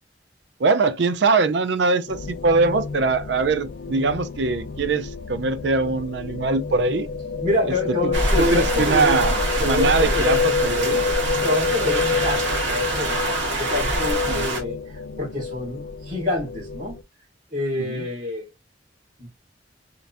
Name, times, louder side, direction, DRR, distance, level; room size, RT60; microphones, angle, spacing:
voice 1, 0.6-7.1 7.9-8.0 8.4-9.4 9.6-11.0 14.3-14.5 17.8-18.1, right 4 dB, 70° right, 0.5 m, -22 dB
sound 1, 2.1-17.0, left 5 dB, 85° left, 0.5 m, -28 dB
voice 2, 7.4-9.2 9.6-10.4 11.4-17.0 17.5-18.5 19.2-19.3, left 2 dB, 45° right, 2.4 m, -27 dB
sound 2, 8.1-14.6, right 2 dB, 90° right, 1.7 m, -25 dB
3.8 x 3.4 x 2.5 m
head